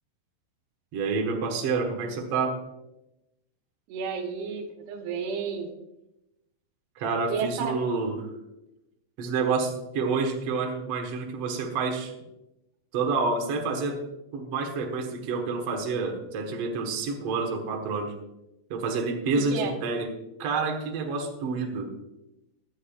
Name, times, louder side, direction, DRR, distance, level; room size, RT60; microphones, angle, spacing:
voice 1, 0.9-2.6 7.0-8.3 9.2-12.1 12.9-14.0 14.3-18.1 18.7-20.1 20.4-21.9, right 4 dB, 55° right, 2 dB, 1.9 m, -28 dB
voice 2, 3.9-5.7 7.3-7.9 19.3-19.7, right 6 dB, 90° right, 3 dB, 3.2 m, -31 dB
17.0 x 11.0 x 2.4 m, 0.93 s
omnidirectional pair, 4.5 m